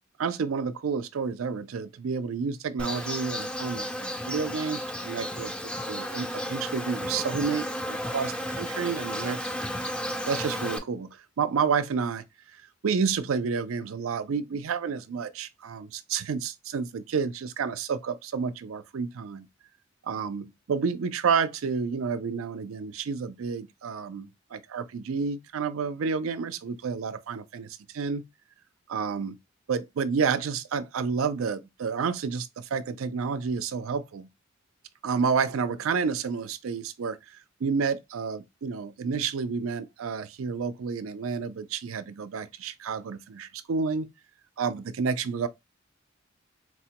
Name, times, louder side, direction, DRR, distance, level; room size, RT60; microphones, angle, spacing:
voice 1, 0.2-9.5 10.3-11.1 11.4-12.2 12.8-19.5 20.0-27.7 27.9-28.2 28.9-29.4 29.7-34.3 35.0-44.1 44.6-45.5, right 5 dB, 90° right, 0.4 m, -30 dB
Insect, 2.8-10.8, equal, 5° left, 0.4 m, -33 dB
4.3 x 2.1 x 2.8 m
head